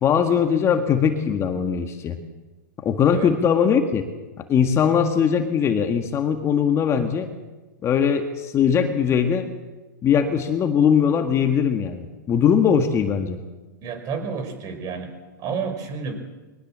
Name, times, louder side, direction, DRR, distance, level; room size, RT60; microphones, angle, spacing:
voice 1, 0.0-2.2 2.8-4.0 4.5-7.3 7.8-9.5 10.0-13.4, left 7 dB, 25° left, 6 dB, 1.8 m, -20 dB
voice 2, 13.8-15.1 15.4-16.1, right 5 dB, 35° right, 7 dB, 5.3 m, -30 dB
22.5 x 18.0 x 7.5 m, 1.2 s
hypercardioid pair, 125°, 11 cm